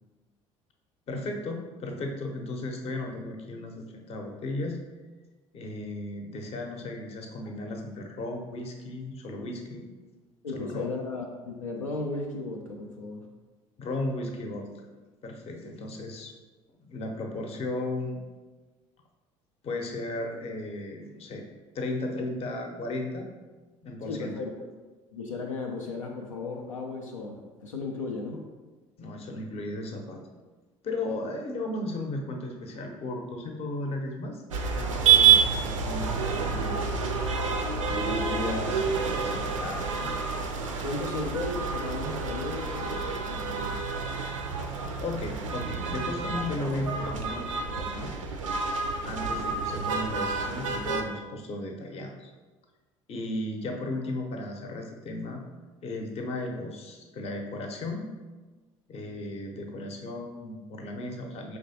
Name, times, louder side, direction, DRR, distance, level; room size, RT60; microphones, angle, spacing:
voice 1, 1.1-4.8 5.5-9.9 10.5-10.9 13.8-14.7 15.2-16.3 16.9-18.2 19.6-21.4 21.7-23.3 23.8-24.3 29.0-30.3 30.8-34.4 34.7-36.9 37.8-40.2 45.0-47.4 47.7-48.1 49.0-52.3 53.1-55.4 55.8-58.1 58.9-61.6, left 2 dB, 40° left, 2 dB, 0.7 m, -35 dB
voice 2, 10.4-13.3 24.1-24.5 25.1-28.5 40.6-43.9, left 3 dB, 80° left, 0 dB, 0.4 m, -35 dB
sound 1, 34.5-51.0, right 6 dB, 75° right, 0.4 m, -28 dB
5.1 x 3.3 x 2.7 m, 1.3 s
figure-of-eight pair, 60°, 17 cm